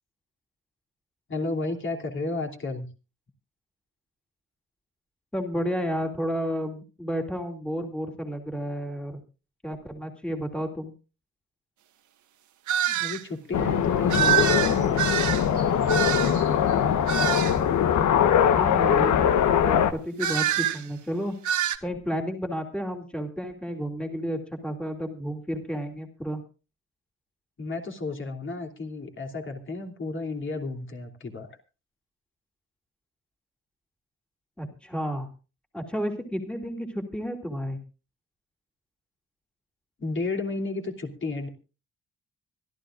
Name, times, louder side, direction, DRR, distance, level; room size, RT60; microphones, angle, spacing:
voice 1, 1.3-2.9 12.9-15.0 27.6-31.6 40.0-41.5, left 3 dB, 40° left, 2 dB, 3.1 m, -32 dB
voice 2, 5.3-9.2 9.6-10.9 18.6-21.4 21.8-26.4 34.6-35.3 35.7-37.8, equal, 5° left, 3 dB, 2.7 m, -31 dB
sound 1, 12.7-13.2 14.1-16.5 17.1-17.6 20.2-20.8 21.4-21.8, right 10 dB, 85° right, 1.6 m, -25 dB
sound 2, 13.5-19.9, left 8 dB, 80° left, 1.2 m, -22 dB
25.0 x 13.0 x 2.5 m, 0.33 s
cardioid pair, 130°, 29 cm